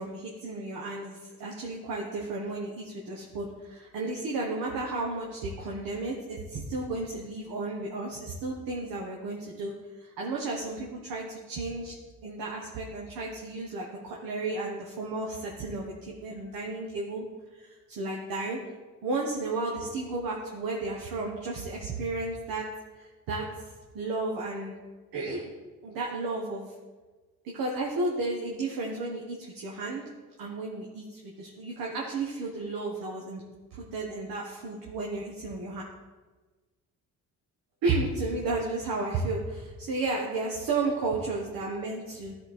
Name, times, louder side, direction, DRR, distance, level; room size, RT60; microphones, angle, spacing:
voice 1, 0.0-11.9 12.2-17.2 17.5-18.6 19.0-22.7 23.0-23.5 23.9-24.7 25.1-25.5 25.8-26.7 27.5-30.1 30.4-33.4 33.7-35.8 37.8-42.3, right 3 dB, 75° right, -2 dB, 1.3 m, -33 dB
12.0 x 4.3 x 4.3 m, 1.3 s
cardioid pair, 85°, 35 cm